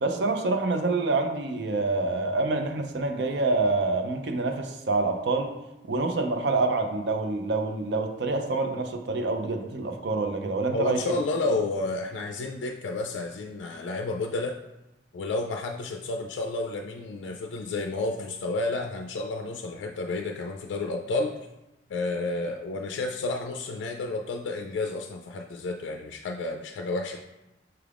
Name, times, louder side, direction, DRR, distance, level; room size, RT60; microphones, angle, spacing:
voice 1, 0.0-5.5 5.9-11.0, right 3 dB, 70° right, 5 dB, 0.5 m, -26 dB
voice 2, 10.7-14.6 15.1-21.4 21.9-27.2, left 2 dB, 90° left, 3 dB, 0.3 m, -31 dB
5.7 x 2.4 x 3.4 m, 0.96 s
head